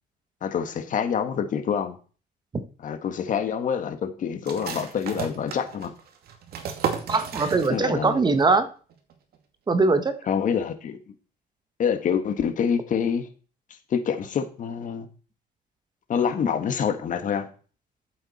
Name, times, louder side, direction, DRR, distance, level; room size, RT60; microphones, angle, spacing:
voice 1, 0.4-2.0 2.8-5.9 7.7-8.2 10.3-11.0 11.8-13.3 13.9-15.1 16.1-17.5, left 7 dB, 50° left, 7 dB, 2.0 m, -26 dB
sound 1, 4.5-8.1 8.4-8.5 8.9-9.4, right 7 dB, 65° right, 2.4 m, -33 dB
voice 2, 7.1-8.7 9.7-10.2, right 3 dB, 25° right, 10 dB, 1.4 m, -21 dB
13.5 x 7.8 x 4.4 m, 0.38 s
cardioid pair, 110°, 17 cm